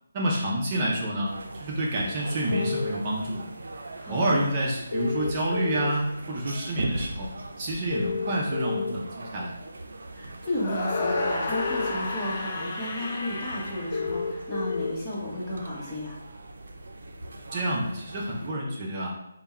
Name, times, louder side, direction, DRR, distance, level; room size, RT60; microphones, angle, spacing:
voice 1, 0.1-3.5 4.1-7.3 7.6-9.5 17.5-19.1, right 1 dB, 30° right, -3 dB, 0.6 m, -28 dB
sound 1, 1.2-18.5, right 2 dB, 75° right, 0.5 m, -40 dB
sound 2, 2.5-2.9 4.9-5.9 7.9-8.9 10.9-11.9 13.9-14.9, left 5 dB, 75° left, 0.3 m, -30 dB
voice 2, 4.0-4.4 10.1-16.2, left 1 dB, 15° left, -7 dB, 1.0 m, -33 dB
sound 3, 10.6-14.7, left 2 dB, 40° left, 0.6 m, -32 dB
3.5 x 2.2 x 4.2 m, 0.85 s
hypercardioid pair, 160°, 0 cm